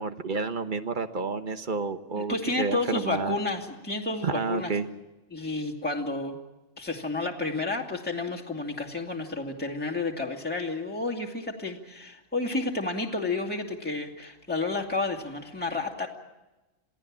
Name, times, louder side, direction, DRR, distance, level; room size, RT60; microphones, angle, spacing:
voice 1, 0.0-3.3 4.2-4.9, right 4 dB, 40° right, 9 dB, 1.2 m, -30 dB
voice 2, 2.1-4.7 5.3-6.4 6.8-16.1, left 3 dB, 5° left, 1 dB, 2.3 m, -31 dB
27.5 x 17.5 x 7.4 m, 1.0 s
omnidirectional pair, 1.3 m